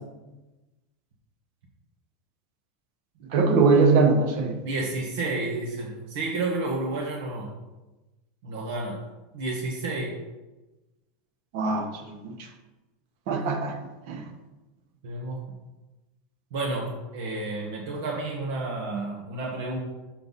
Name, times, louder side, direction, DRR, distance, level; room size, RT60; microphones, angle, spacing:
voice 1, 3.2-4.5 11.5-12.5 13.3-13.8 14.1-14.2, right 4 dB, 60° right, 5 dB, 1.2 m, -22 dB
voice 2, 4.6-7.6 8.4-9.0 9.3-10.2 15.0-15.4 16.5-19.8, right 2 dB, 80° right, -2 dB, 1.2 m, -31 dB
6.7 x 5.4 x 4.0 m, 1.1 s
supercardioid pair, 145°, 0 cm